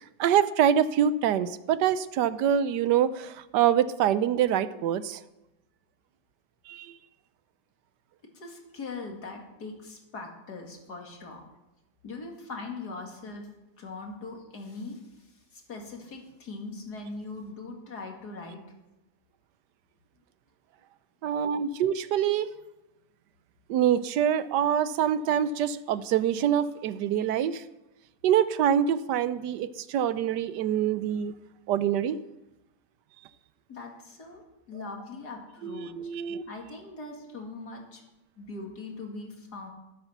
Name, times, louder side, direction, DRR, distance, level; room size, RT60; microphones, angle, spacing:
voice 1, 0.2-5.2 6.7-6.9 21.2-22.5 23.7-27.6 28.2-31.3 31.7-32.2 35.6-36.4, right 9 dB, 85° right, 15 dB, 1.3 m, -25 dB
voice 2, 8.3-11.4 12.0-13.5 13.8-18.6 33.7-34.4 34.7-38.0 38.4-39.7, left 3 dB, 65° left, 1 dB, 2.8 m, -41 dB
12.0 x 12.0 x 6.0 m, 0.96 s
omnidirectional pair, 1.8 m